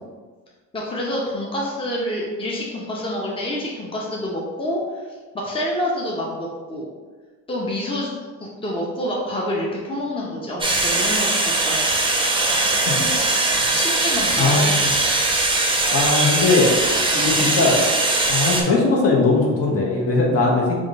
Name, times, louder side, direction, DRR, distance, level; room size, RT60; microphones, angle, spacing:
voice 1, 0.7-4.8 5.3-6.9 7.5-11.8 13.7-14.8, left 1 dB, 20° left, -4 dB, 0.8 m, -27 dB
sound 1, 10.6-18.6, right 2 dB, 15° right, 0.6 m, -20 dB
voice 2, 12.5-13.1 14.4-14.9 15.9-17.8 18.3-20.8, left 3 dB, 50° left, -3 dB, 1.1 m, -20 dB
3.5 x 2.5 x 4.1 m, 1.4 s
cardioid pair, 90°, 30 cm